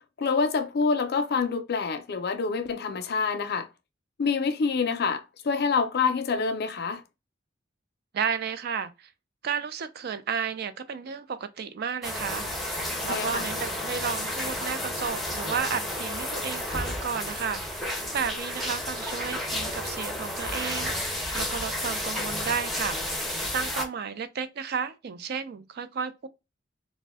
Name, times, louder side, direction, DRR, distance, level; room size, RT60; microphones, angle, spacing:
voice 1, 0.2-3.7 4.2-7.0 13.0-13.4, left 5 dB, 55° left, 0.4 m, -26 dB
voice 2, 8.1-9.1 9.4-12.8 13.0-26.3, right 6 dB, 55° right, 0.4 m, -33 dB
sound 1, 12.0-23.9, left 1 dB, ahead, 0.5 m, -32 dB
2.5 x 2.1 x 3.3 m
head